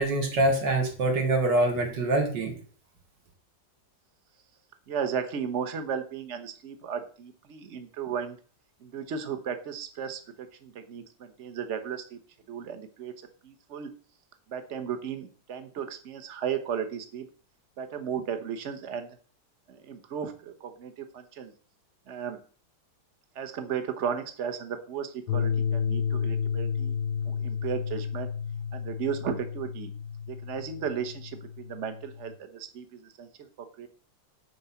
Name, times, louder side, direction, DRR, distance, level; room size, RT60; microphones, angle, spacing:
voice 1, 0.0-2.5, right 2 dB, 70° right, 2 dB, 2.9 m, -25 dB
voice 2, 4.9-8.4 8.8-12.2 12.5-13.1 13.4-13.9 14.5-17.3 17.8-19.2 19.7-21.5 22.1-22.4 23.3-26.9 27.3-28.3 28.7-29.9 30.3-33.9, right 7 dB, 45° right, 8 dB, 1.3 m, -35 dB
sound 1, 25.3-32.3, left 7 dB, 75° left, 1.2 m, -31 dB
9.5 x 4.6 x 7.0 m, 0.40 s
omnidirectional pair, 2.0 m